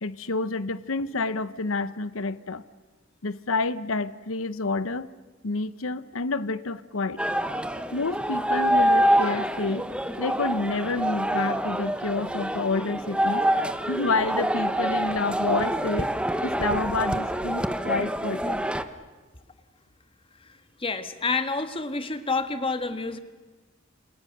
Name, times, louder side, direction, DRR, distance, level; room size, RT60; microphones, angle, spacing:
voice 1, 0.0-2.6 3.2-5.1 5.4-7.2 7.9-9.9 10.2-13.4 13.9-16.1 16.4-18.7, left 3 dB, 80° left, 15 dB, 0.9 m, -29 dB
sound 1, 7.2-18.8, right 1 dB, 5° right, 1.0 m, -26 dB
voice 2, 20.4-23.2, left 3 dB, 25° left, 9 dB, 1.6 m, -29 dB
29.5 x 27.5 x 6.7 m, 1.3 s
head